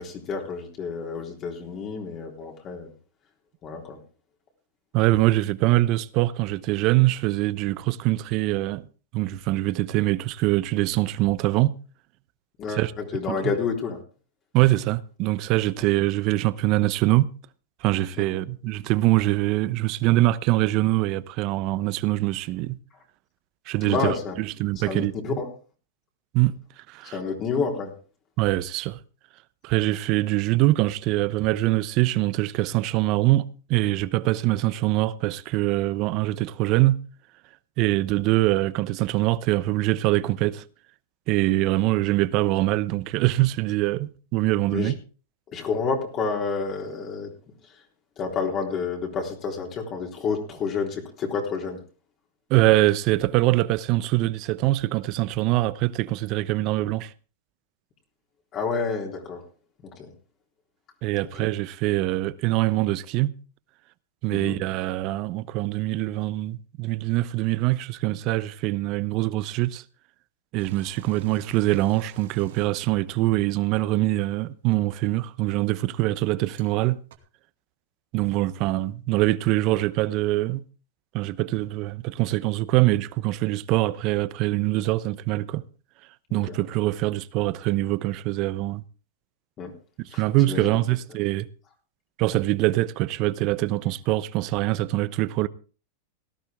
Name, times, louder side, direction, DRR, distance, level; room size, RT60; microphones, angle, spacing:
voice 1, 0.0-2.9 3.6-4.0 12.6-14.0 23.9-24.3 24.8-25.5 27.1-27.9 44.7-44.9 45.5-47.3 48.2-51.8 58.5-59.4 60.0-60.1 64.3-64.6 86.3-86.6 89.6-89.7 90.1-90.2 90.5-90.7, left 5 dB, 35° left, 3.7 m, -29 dB
voice 2, 4.9-8.9 9.1-11.8 12.7-12.9 13.3-13.5 14.5-17.3 17.8-22.8 23.7-25.4 26.3-26.5 26.9-27.2 28.4-29.0 29.6-37.0 37.8-40.6 41.3-44.9 52.5-57.1 61.0-63.3 64.2-69.8 70.5-77.0 78.1-80.6 81.1-85.6 86.3-88.8 90.1-91.5 92.2-95.5, right 17 dB, 50° right, 0.9 m, -23 dB
sound 1, 70.6-73.5 74.7-74.8 76.6-76.7 77.1-77.2, left 1 dB, 80° right, 2.3 m, -48 dB
18.0 x 11.5 x 3.7 m
hypercardioid pair, 125°, 0 cm